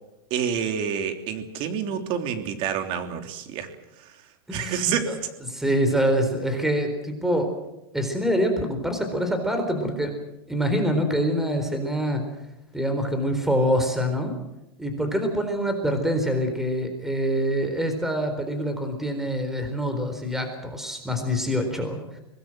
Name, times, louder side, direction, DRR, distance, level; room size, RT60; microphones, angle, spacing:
voice 1, 0.3-3.7 4.5-5.2, right 7 dB, 40° right, 6 dB, 3.2 m, -28 dB
voice 2, 4.5-5.2 5.4-7.5 7.9-10.1 10.5-12.2 12.7-14.3 14.8-22.2, equal, 5° right, 6 dB, 4.1 m, -25 dB
24.5 x 19.5 x 7.9 m, 0.91 s
hypercardioid pair, 135°, 13 cm